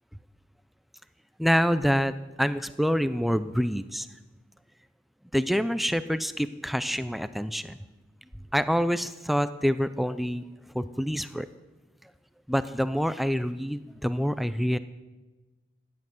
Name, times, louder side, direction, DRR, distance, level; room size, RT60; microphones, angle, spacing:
voice 1, 1.4-4.1 5.3-7.8 8.5-10.4 10.7-11.5 12.5-14.8, equal, ahead, 13 dB, 0.4 m, -26 dB
15.5 x 10.5 x 7.7 m, 1.1 s
head